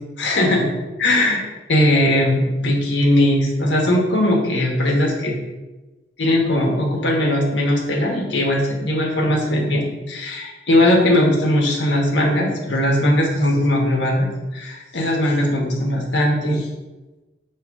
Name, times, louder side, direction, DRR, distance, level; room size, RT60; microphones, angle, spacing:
voice 1, 0.2-0.7 1.0-1.4 1.7-5.3 6.2-16.7, left 1 dB, 85° left, -1 dB, 1.3 m, -19 dB
6.7 x 3.2 x 4.7 m, 1.1 s
head